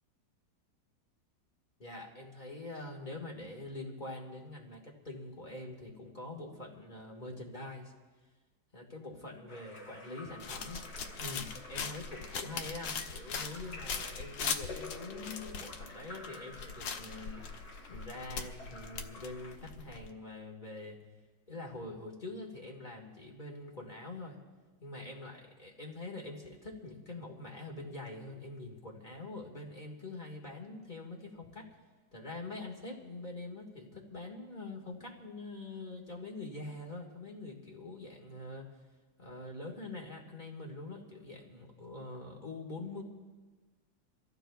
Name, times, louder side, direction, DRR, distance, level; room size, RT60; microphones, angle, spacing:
voice 1, 1.8-7.9 8.7-10.8 11.2-17.4 17.9-21.0 21.5-24.4 24.8-31.7 32.1-38.7 39.2-43.0, left 2 dB, 25° left, -1 dB, 1.8 m, -44 dB
Splash splatter / Drip / Trickle dribble, 9.5-19.6, left 2 dB, 40° left, 2.3 m, -51 dB
sound 1, 10.4-20.1, left 5 dB, 85° left, 1.7 m, -41 dB
28.0 x 15.0 x 2.4 m, 1.3 s
omnidirectional pair, 1.9 m